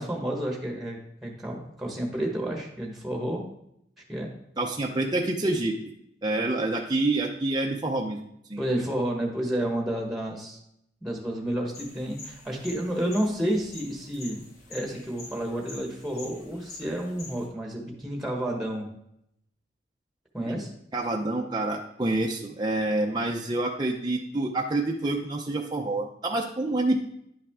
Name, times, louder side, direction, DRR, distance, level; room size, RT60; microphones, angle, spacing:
voice 1, 0.0-3.4 4.1-4.3 8.6-10.6 11.0-14.4 14.7-18.9 20.3-20.7, right 1 dB, ahead, 0 dB, 1.3 m, -30 dB
voice 2, 4.6-5.8 6.2-8.2 8.5-8.6 20.9-27.0, right 2 dB, 25° right, 0 dB, 0.6 m, -27 dB
sound 1, 11.7-17.5, left 2 dB, 55° left, 2.9 m, -46 dB
10.5 x 5.8 x 3.6 m, 0.76 s
head